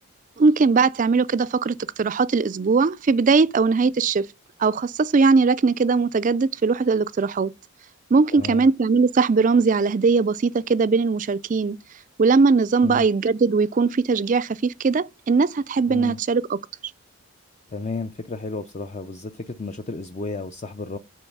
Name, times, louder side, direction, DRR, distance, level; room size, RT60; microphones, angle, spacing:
voice 1, 0.4-4.3 4.6-7.5 8.1-11.8 12.2-16.6, right 4 dB, 35° right, 0.3 m, -20 dB
voice 2, 8.3-8.7 12.8-13.1 15.9-16.2 17.7-21.0, left 3 dB, 30° left, 0.4 m, -32 dB
9.1 x 3.9 x 5.4 m
head